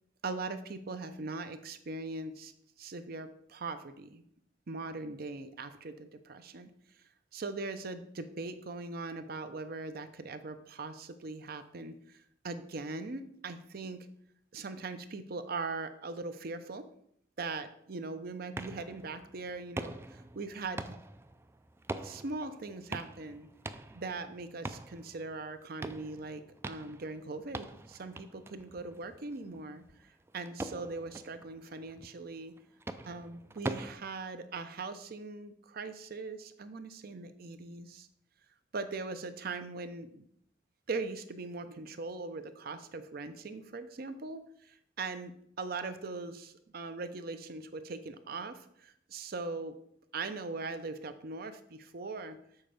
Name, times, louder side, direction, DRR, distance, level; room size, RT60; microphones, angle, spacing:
voice 1, 0.2-2.5 2.8-4.2 4.7-6.7 7.3-14.1 14.5-16.9 17.4-21.0 22.0-23.5 23.9-32.5 33.0-38.1 38.7-40.2 40.9-49.8 50.1-52.4, right 3 dB, 55° right, 10 dB, 0.6 m, -40 dB
sound 1, 18.5-33.9, right 2 dB, 15° right, 0.3 m, -44 dB
7.3 x 4.4 x 5.1 m, 0.71 s
head